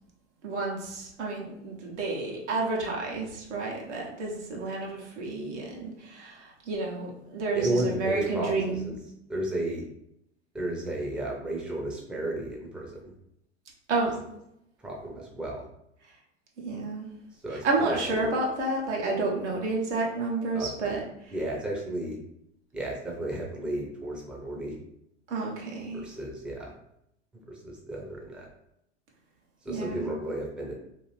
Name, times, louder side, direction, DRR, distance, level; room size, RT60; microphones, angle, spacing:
voice 1, 0.4-8.9 13.9-14.2 16.6-17.1 17.5-21.3 25.3-26.1 29.7-30.2, right 3 dB, 80° right, -2 dB, 1.0 m, -30 dB
voice 2, 7.5-8.8 9.3-9.8 10.5-13.0 14.8-15.6 17.4-18.2 20.5-20.9 21.3-22.2 22.7-24.7 25.9-26.7 27.5-28.5 29.7-30.7, right 1 dB, 5° right, -2 dB, 0.5 m, -33 dB
2.7 x 2.5 x 3.1 m, 0.78 s
hypercardioid pair, 90°, 35 cm